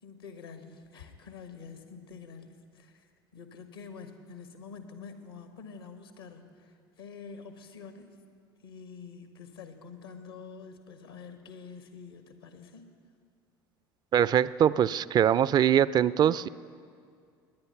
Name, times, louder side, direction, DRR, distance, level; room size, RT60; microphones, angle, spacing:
voice 1, 0.0-8.2 8.6-12.9, left 5 dB, 85° left, 7 dB, 1.4 m, -47 dB
voice 2, 14.1-16.5, right 9 dB, 35° right, 19 dB, 0.4 m, -23 dB
20.0 x 9.8 x 5.7 m, 2.2 s
figure-of-eight pair, 65°, 12 cm